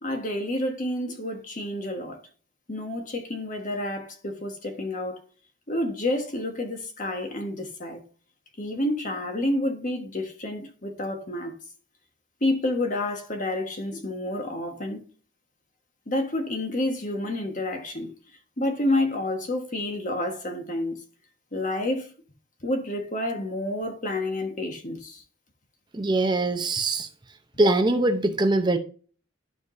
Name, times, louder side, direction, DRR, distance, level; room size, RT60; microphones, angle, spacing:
voice 1, 0.0-2.2 2.7-5.2 5.7-8.0 8.6-11.5 12.4-15.0 16.1-18.1 18.6-21.0 21.5-22.1 22.6-25.2, left 1 dB, 40° left, 1.4 m, -29 dB
voice 2, 25.9-27.1 27.6-28.8, right 2 dB, 20° right, 0.7 m, -22 dB
12.0 x 5.0 x 2.6 m
head